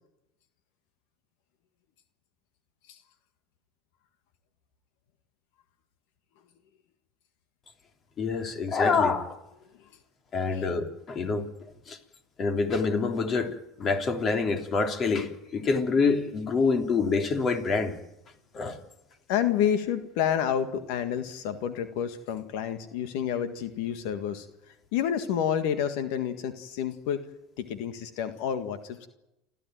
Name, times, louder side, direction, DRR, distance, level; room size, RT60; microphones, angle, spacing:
voice 1, 8.2-9.4 10.3-11.5 11.9-12.0 12.4-17.9 18.5-18.8, left 4 dB, 35° left, 3.3 m, -26 dB
voice 2, 19.3-27.2 27.6-29.1, left 9 dB, 70° left, 1.7 m, -29 dB
28.5 x 13.5 x 9.2 m
hypercardioid pair, 95°, 0 cm